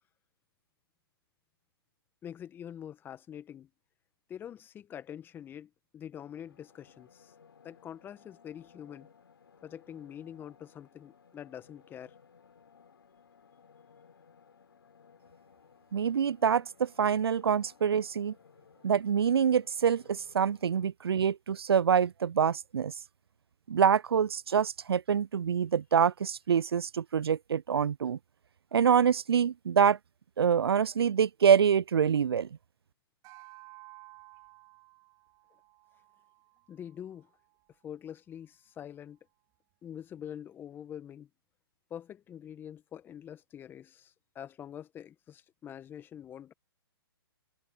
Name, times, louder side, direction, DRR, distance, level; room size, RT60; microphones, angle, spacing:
voice 1, 2.2-3.7 4.3-7.3 7.6-9.1 9.6-12.1 36.7-37.3 37.8-39.2 39.8-41.3 41.9-46.5, left 9 dB, 15° left, 1.6 m, -45 dB
sound 1, 6.2-20.9, left 6 dB, 70° left, 3.8 m, -60 dB
voice 2, 15.9-18.3 18.8-22.9 23.7-28.2 28.7-30.0 30.4-32.5, right 7 dB, 75° right, 0.4 m, -26 dB
sound 2, 33.2-37.8, right 20 dB, 30° right, 2.9 m, -55 dB
figure-of-eight pair, 130°, 13 cm